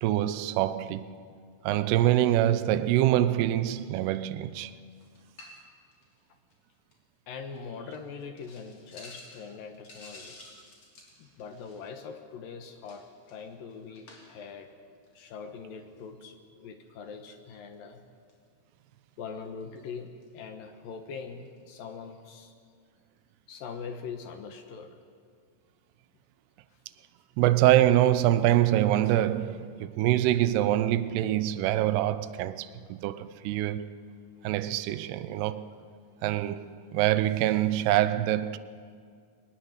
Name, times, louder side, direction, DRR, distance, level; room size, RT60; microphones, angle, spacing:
voice 1, 0.0-1.2 1.6-4.7 27.4-33.9 34.4-35.7 36.2-38.6, right 13 dB, 85° right, 2.8 m, -25 dB
sound 1, 5.0-5.6 5.9-6.2 6.5-6.6 6.9-7.0 7.5-7.6 7.9-8.0 8.4-12.0 12.8-14.5 14.9-15.1 15.8-16.1 17.5-17.7 18.3-18.4 19.1-19.2 19.4-20.4 21.1-21.2 21.5-21.6, left 2 dB, 40° left, 3.9 m, -52 dB
voice 2, 7.3-10.4 11.2-14.7 15.1-18.0 19.2-22.5 23.5-25.0, left 5 dB, 70° left, 2.7 m, -42 dB
21.5 x 19.5 x 8.1 m
omnidirectional pair, 4.7 m